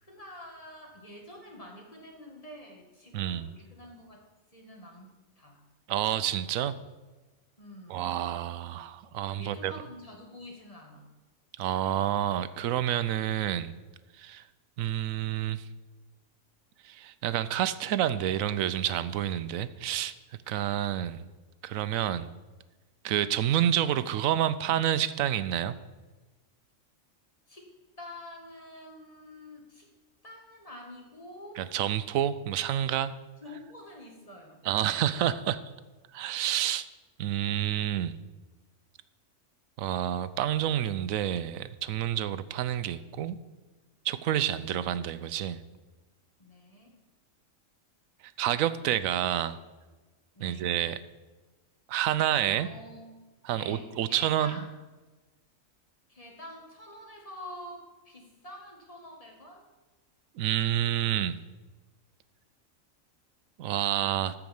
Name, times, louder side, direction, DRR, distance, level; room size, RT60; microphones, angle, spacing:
voice 1, 0.0-5.6 7.6-8.1 9.4-11.1 27.5-27.7 28.0-29.9 30.2-31.7 33.4-34.6 46.4-47.0 50.3-50.8 52.5-53.1 53.5-54.7 56.1-59.7, left 1 dB, 25° left, 0 dB, 2.0 m, -47 dB
voice 2, 3.1-3.5 5.9-6.7 7.9-9.7 11.6-13.7 14.2-14.4 14.8-15.6 16.8-20.1 20.5-21.2 21.6-22.3 23.0-25.7 31.6-33.1 34.6-35.6 36.1-36.9 37.2-38.1 39.8-43.4 44.0-45.6 48.4-49.6 50.4-51.0 51.9-52.7 53.4-54.6 60.4-61.4 63.6-64.3, right 11 dB, 90° right, 14 dB, 1.0 m, -28 dB
14.0 x 4.9 x 7.0 m, 1.2 s
omnidirectional pair, 1.4 m